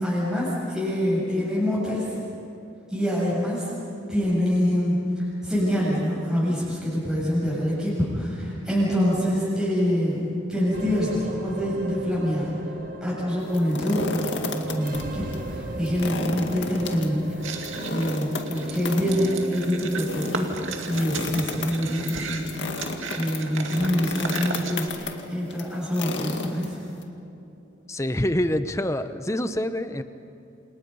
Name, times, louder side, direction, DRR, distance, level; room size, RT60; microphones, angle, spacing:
voice 1, 0.0-2.1 2.9-3.7 4.1-12.5 13.0-17.6 17.9-22.6 23.1-26.8, equal, 5° right, -8 dB, 7.6 m, -25 dB
sound 1, 10.7-29.2, right 2 dB, 45° right, 1.7 m, -39 dB
sound 2, 13.4-15.0 15.3-15.4 15.8-27.0, left 3 dB, 65° left, 2.1 m, -34 dB
sound 3, 17.4-24.9, right 4 dB, 90° right, 2.3 m, -35 dB
voice 2, 27.9-30.0, left 1 dB, 15° left, 10 dB, 0.8 m, -26 dB
28.5 x 28.5 x 5.5 m, 2.6 s
head